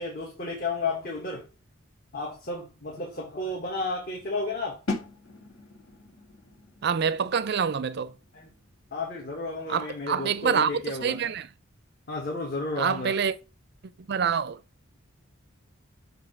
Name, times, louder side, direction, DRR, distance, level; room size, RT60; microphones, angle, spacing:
voice 1, 0.0-1.5 2.1-4.8 8.3-8.5 8.9-11.3 12.1-13.2, left 3 dB, 40° left, 1.4 m, -32 dB
sound 1, 4.9-10.6, left 3 dB, 70° left, 1.9 m, -40 dB
voice 2, 6.8-8.1 9.7-10.7 11.0-11.5 12.8-13.3 14.1-14.6, right 6 dB, 50° right, 0.4 m, -26 dB
7.4 x 2.8 x 5.9 m
head